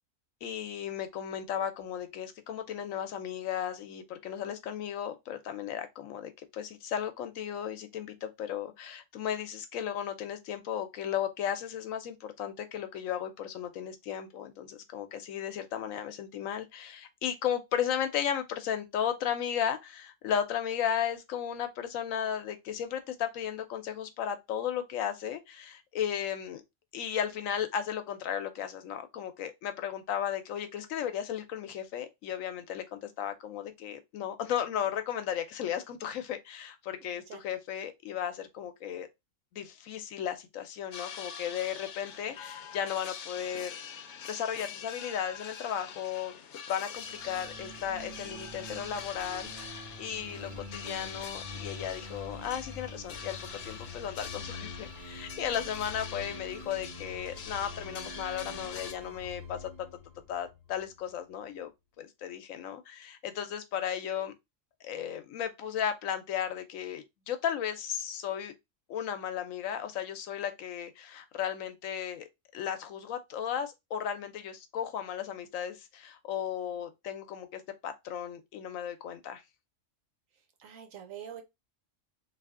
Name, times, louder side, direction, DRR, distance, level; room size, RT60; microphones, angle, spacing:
voice 1, 0.4-26.6 26.9-39.1 39.5-43.8 44.3-46.3 46.7-53.4 53.6-59.7 60.3-61.7 62.0-64.3 64.8-68.5 68.9-79.4, left 9 dB, 90° left, 1.1 m, -35 dB
voice 2, 37.0-37.4 80.6-81.4, right 9 dB, 85° right, 1.2 m, -45 dB
sound 1, 40.9-58.9, left 7 dB, 65° left, 0.9 m, -44 dB
sound 2, 46.9-61.3, left 2 dB, 55° right, 1.9 m, -46 dB
3.3 x 2.7 x 3.6 m
omnidirectional pair, 1.3 m